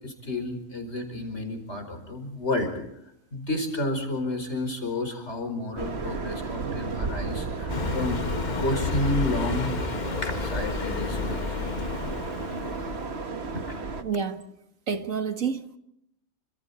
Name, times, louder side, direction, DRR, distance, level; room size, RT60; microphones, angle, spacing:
voice 1, 0.0-2.7 3.3-8.2 8.6-9.7 10.2-11.6 13.7-13.8, left 1 dB, 60° left, 5.2 m, -30 dB
sound 1, 5.8-14.0, right 4 dB, 55° right, 1.7 m, -34 dB
Car passing by, 7.7-13.2, left 4 dB, 40° left, 1.1 m, -31 dB
voice 2, 14.0-14.4 14.9-15.8, right 6 dB, 85° right, 2.0 m, -29 dB
29.0 x 27.0 x 4.2 m
omnidirectional pair, 1.3 m